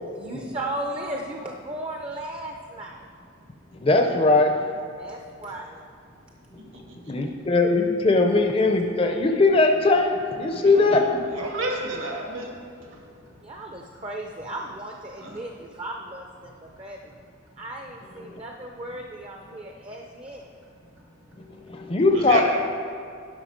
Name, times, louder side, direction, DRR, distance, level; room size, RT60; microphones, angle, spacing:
voice 1, 0.1-3.0 5.0-5.8 13.4-17.0 17.6-20.5, right 1 dB, 25° right, 2 dB, 0.5 m, -36 dB
voice 2, 3.8-4.8 7.1-11.2 18.3-18.4 21.7-22.4, left 3 dB, 25° left, 4 dB, 0.5 m, -20 dB
voice 3, 10.6-11.1 11.4-12.6 12.8-13.0 15.2-15.5 22.1-22.4, right 2 dB, 75° right, 0 dB, 1.7 m, -31 dB
11.0 x 5.6 x 5.1 m, 2.4 s
head